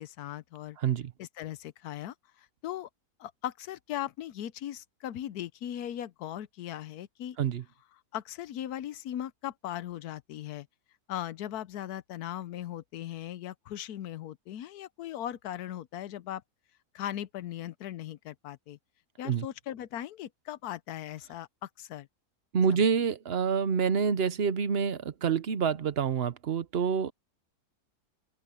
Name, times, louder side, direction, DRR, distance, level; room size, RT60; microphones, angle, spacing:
voice 1, 0.0-0.8 1.2-2.9 3.2-7.4 8.1-10.7 11.1-16.4 16.9-18.8 19.2-22.1 22.7-22.8, left 12 dB, 85° left, 1.2 m, -38 dB
voice 2, 0.8-1.1 7.4-7.6 19.2-19.5 22.5-27.1, right 6 dB, 50° right, 0.9 m, -27 dB
open air
omnidirectional pair, 1.6 m